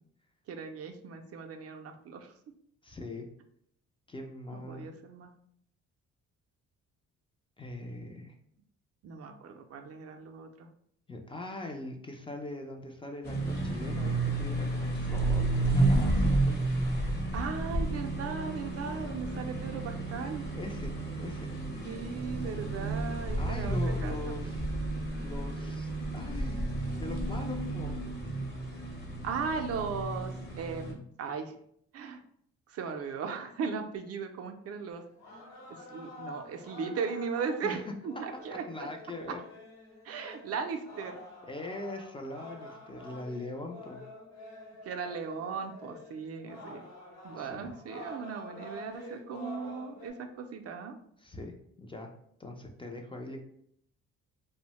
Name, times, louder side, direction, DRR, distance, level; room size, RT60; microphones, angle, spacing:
voice 1, 0.5-2.3 4.5-5.3 9.0-10.7 17.3-20.5 21.8-24.3 29.2-30.3 30.6-31.5 31.9-32.2 32.7-35.0 35.9-38.9 40.0-41.2 44.8-46.8 47.2-51.0, right 5 dB, 55° right, 5 dB, 0.4 m, -37 dB
voice 2, 2.8-3.3 4.1-4.9 7.6-8.3 11.1-16.9 20.6-21.5 23.4-24.6 25.2-26.6 27.0-28.0 37.6-37.8 38.5-39.4 41.5-44.0 47.3-47.7 51.2-51.5 51.8-52.1 52.4-53.4, left 2 dB, 20° left, 2 dB, 0.3 m, -41 dB
sound 1, 13.2-30.9, right 2 dB, 35° left, 0.8 m, -31 dB
sound 2, 34.9-50.1, left 1 dB, 65° left, 1.0 m, -48 dB
2.6 x 2.1 x 2.9 m, 0.68 s
cardioid pair, 90°, 30 cm